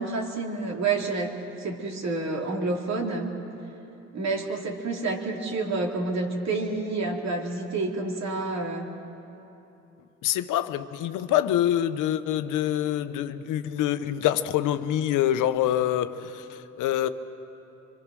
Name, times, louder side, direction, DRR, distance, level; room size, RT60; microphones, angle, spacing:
voice 1, 0.0-3.3 4.1-8.9, right 3 dB, 60° right, 3.0 m, -29 dB
voice 2, 10.2-17.1, left 11 dB, 90° left, 0.8 m, -26 dB
24.5 x 24.0 x 6.2 m
cardioid pair, 90°, 30 cm